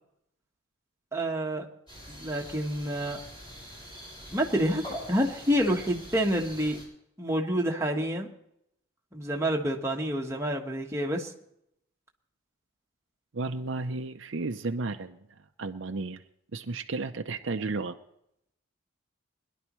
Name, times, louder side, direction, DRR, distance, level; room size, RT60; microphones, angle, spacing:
voice 1, 1.1-1.7 2.1-3.2 4.3-6.8 7.2-8.3 9.1-11.3, equal, 15° right, 0 dB, 1.3 m, -28 dB
sound 1, 1.9-6.8, equal, 25° left, 5.4 m, -44 dB
voice 2, 13.3-15.2 15.6-16.2 16.5-18.0, right 3 dB, 65° right, 7 dB, 0.6 m, -33 dB
21.5 x 11.0 x 3.1 m, 0.76 s
head